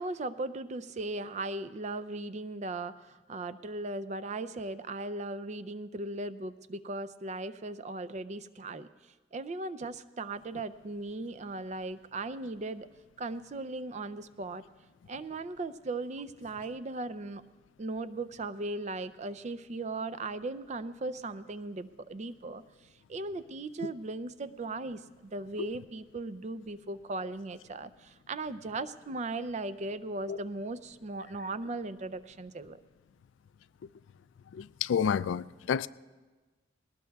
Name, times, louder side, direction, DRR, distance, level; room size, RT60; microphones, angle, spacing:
voice 1, 0.0-8.9 9.3-12.9 13.2-14.6 15.1-17.4 17.8-22.6 23.1-32.8, right 2 dB, 35° right, 0.4 m, -37 dB
voice 2, 34.9-35.9, left 7 dB, 75° left, 0.3 m, -28 dB
21.0 x 19.0 x 2.3 m
head